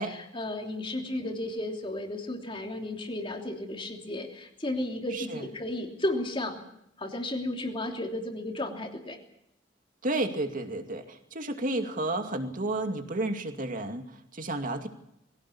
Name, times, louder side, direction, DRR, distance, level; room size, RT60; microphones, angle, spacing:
voice 1, 0.0-6.6 7.0-9.2, left 1 dB, 25° left, 3 dB, 3.1 m, -33 dB
voice 2, 5.1-5.5 10.0-14.0 14.3-14.9, right 2 dB, 45° right, 6 dB, 2.5 m, -31 dB
22.0 x 17.0 x 8.6 m, 0.79 s
head